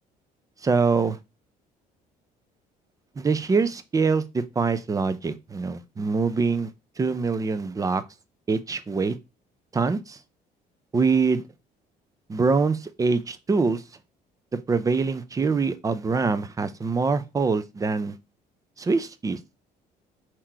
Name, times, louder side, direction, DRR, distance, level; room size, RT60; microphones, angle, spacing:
voice 1, 0.6-1.2 3.2-6.7 7.0-8.0 8.5-9.2 9.7-10.2 10.9-11.4 12.3-13.8 14.5-18.2 18.8-19.4, right 4 dB, 20° right, 0.5 m, -24 dB
3.7 x 3.0 x 4.4 m
cardioid pair, 110°, 17 cm